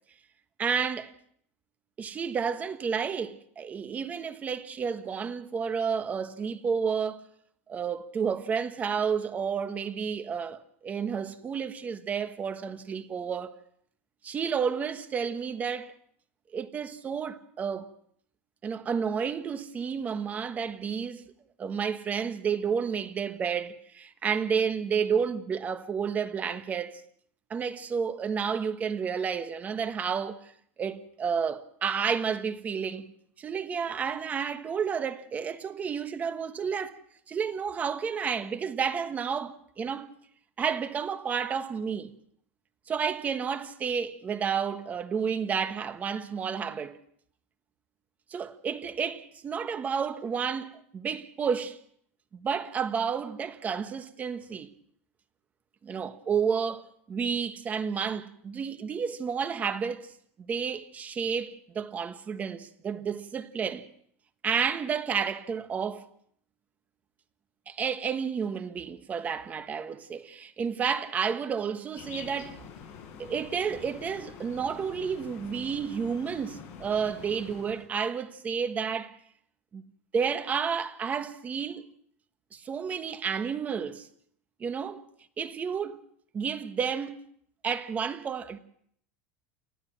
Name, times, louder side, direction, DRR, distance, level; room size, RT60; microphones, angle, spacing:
voice 1, 0.6-1.1 2.0-7.3 7.7-13.5 14.2-15.9 16.5-17.9 18.6-21.2 21.6-27.0 27.5-30.5 30.8-33.1 33.4-37.0 37.3-40.1 40.6-42.1 42.9-47.0 48.3-51.8 52.3-54.7 55.8-60.1 60.4-63.9 64.4-66.1 67.7-72.6 73.2-79.2 79.7-79.8 80.1-81.8 82.5-84.1 84.6-85.0 85.4-86.0 86.3-87.2 87.6-88.6, right 6 dB, 20° right, 1.3 m, -31 dB
sound 1, 71.9-77.9, left 7 dB, 40° left, 6.8 m, -46 dB
29.5 x 13.0 x 7.5 m
supercardioid pair, 150°, 7 cm